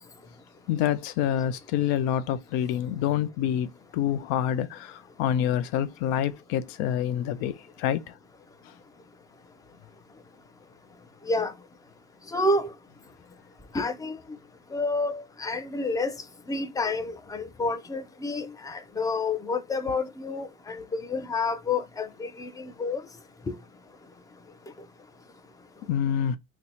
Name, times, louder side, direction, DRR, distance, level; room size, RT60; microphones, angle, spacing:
voice 1, 0.7-8.1 25.9-26.4, left 10 dB, 75° left, 0.5 m, -27 dB
voice 2, 12.3-12.7 13.7-14.2 14.7-16.1 16.5-23.0 23.5-23.6, left 3 dB, 10° left, 0.5 m, -29 dB
2.7 x 2.2 x 4.0 m
supercardioid pair, 85°, 38 cm